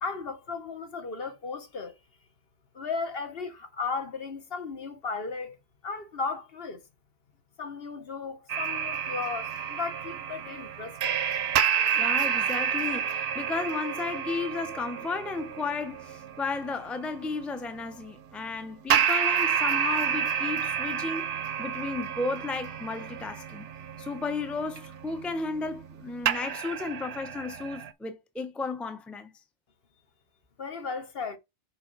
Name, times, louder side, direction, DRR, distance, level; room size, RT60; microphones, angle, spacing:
voice 1, 0.0-1.9 2.7-5.6 5.8-6.9 7.6-11.2 30.6-31.4, left 4 dB, 55° left, 1.3 m, -35 dB
sound 1, 8.5-17.3 18.9-26.0 26.3-27.9, right 8 dB, 65° right, 0.9 m, -30 dB
voice 2, 11.9-23.7 24.0-29.3, left 4 dB, ahead, 0.7 m, -34 dB
6.7 x 4.7 x 3.9 m
omnidirectional pair, 1.2 m